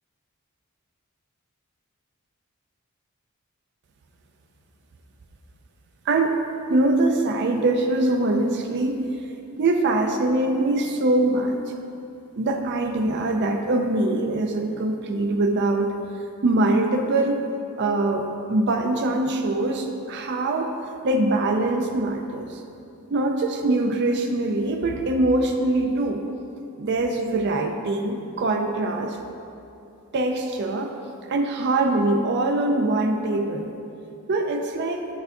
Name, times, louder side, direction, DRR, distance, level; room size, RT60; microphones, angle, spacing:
voice 1, 6.1-6.4 6.7-9.1 9.6-11.6 12.3-15.9 16.4-17.4 17.8-20.7 21.0-22.6 23.1-26.2 26.8-29.2 30.1-31.0 31.3-33.7 34.3-35.1, right 2 dB, 50° right, 4 dB, 0.4 m, -23 dB
6.9 x 6.5 x 2.6 m, 2.6 s
head